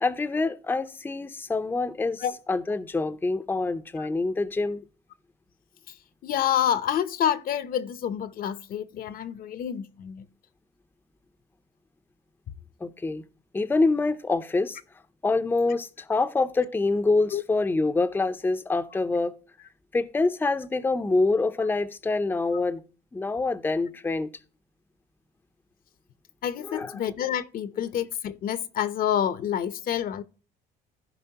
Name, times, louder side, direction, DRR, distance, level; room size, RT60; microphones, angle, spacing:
voice 1, 0.0-2.2 2.5-4.8 12.8-13.2 13.5-14.8 15.2-19.3 19.9-22.8 23.1-24.3 26.7-26.9, left 3 dB, 10° left, 0.6 m, -26 dB
voice 2, 5.9-10.3 17.3-17.4 26.4-30.2, left 9 dB, 60° left, 0.7 m, -28 dB
14.5 x 5.1 x 2.8 m
cardioid pair, 110°, 17 cm